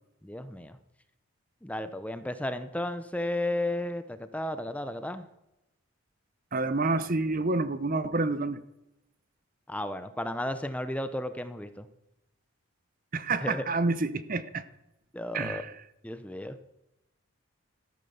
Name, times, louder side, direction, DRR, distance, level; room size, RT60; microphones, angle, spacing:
voice 1, 0.2-0.8 1.6-5.3 9.7-11.9 13.4-13.6 15.1-15.6 16.0-16.6, left 1 dB, 5° left, 11 dB, 0.7 m, -33 dB
voice 2, 6.5-8.6 13.1-14.6 15.3-15.7, right 3 dB, 40° right, 14 dB, 0.7 m, -28 dB
13.5 x 10.5 x 7.0 m, 0.88 s
head